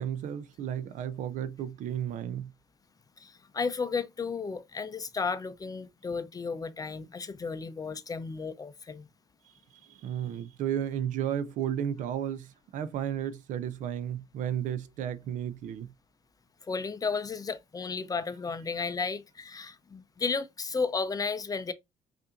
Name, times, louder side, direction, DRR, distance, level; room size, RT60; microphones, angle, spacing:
voice 1, 0.0-2.5 9.8-15.9, right 10 dB, 70° right, 0.5 m, -33 dB
voice 2, 3.2-9.1 16.6-21.7, left 4 dB, 25° left, 0.5 m, -33 dB
5.4 x 2.6 x 2.4 m
cardioid pair, 85°, 14 cm